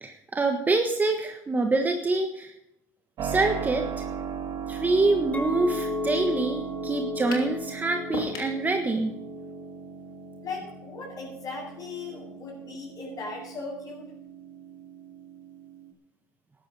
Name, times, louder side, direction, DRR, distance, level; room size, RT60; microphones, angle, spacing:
voice 1, 0.0-2.5 3.2-4.0 4.7-9.1, right 3 dB, 20° right, 4 dB, 1.4 m, -26 dB
Keyboard (musical), 3.2-15.9, right 7 dB, 55° right, 2.5 m, -37 dB
Chink clink, 5.3-10.6, left 6 dB, 15° left, 2.1 m, -36 dB
sound 1, 7.3-7.6 8.1-8.6, left 5 dB, 65° left, 3.0 m, -35 dB
voice 2, 10.4-14.1, left 3 dB, 45° left, -5 dB, 6.6 m, -38 dB
13.5 x 11.0 x 5.4 m, 0.83 s
supercardioid pair, 95°, 8 cm